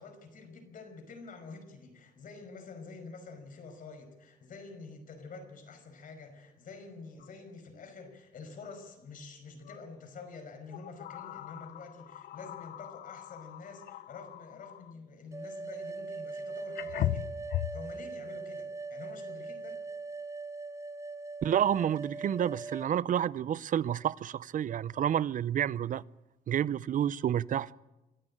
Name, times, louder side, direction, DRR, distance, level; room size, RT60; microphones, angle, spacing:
voice 1, 0.0-17.3 17.7-19.8, left 4 dB, 60° left, 5.4 m, -48 dB
sound 1, 7.2-7.3 7.7-7.8 9.6-9.9 10.7-15.0 16.2-16.3 16.8-17.9, left 13 dB, 75° left, 0.8 m, -38 dB
sound 2, 15.3-22.9, right 3 dB, 20° right, 1.0 m, -41 dB
voice 2, 21.4-26.0 26.5-27.7, right 10 dB, 55° right, 0.6 m, -29 dB
25.0 x 13.0 x 8.7 m
cardioid pair, 95°, 16 cm